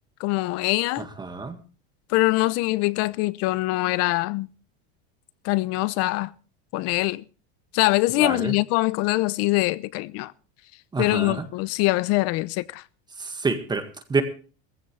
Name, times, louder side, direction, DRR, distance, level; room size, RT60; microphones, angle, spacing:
voice 1, 0.2-1.1 2.1-4.5 5.4-6.3 6.7-7.2 7.7-10.3 11.0-12.8, left 20 dB, 50° left, 0.8 m, -23 dB
voice 2, 1.0-1.6 8.2-8.5 10.9-11.5 13.2-14.2, right 4 dB, 15° right, 1.8 m, -28 dB
18.5 x 15.5 x 3.3 m
supercardioid pair, 150°, 32 cm